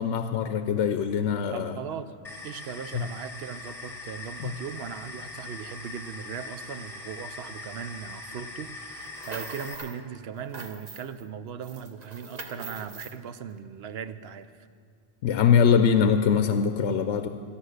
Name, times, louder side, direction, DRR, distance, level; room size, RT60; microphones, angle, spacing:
voice 1, 0.0-1.7 2.9-3.0 4.4-4.5 15.2-17.3, left 7 dB, 85° left, 8 dB, 0.9 m, -23 dB
voice 2, 1.5-2.1 2.4-14.5, right 7 dB, 65° right, 12 dB, 0.8 m, -38 dB
sound 1, 2.2-9.7, left 3 dB, ahead, 1.5 m, -41 dB
sound 2, 9.0-10.0 10.3-11.3 11.6-13.2, right 4 dB, 40° right, 0.9 m, -42 dB
13.5 x 11.5 x 6.4 m, 2.2 s
omnidirectional pair, 1.2 m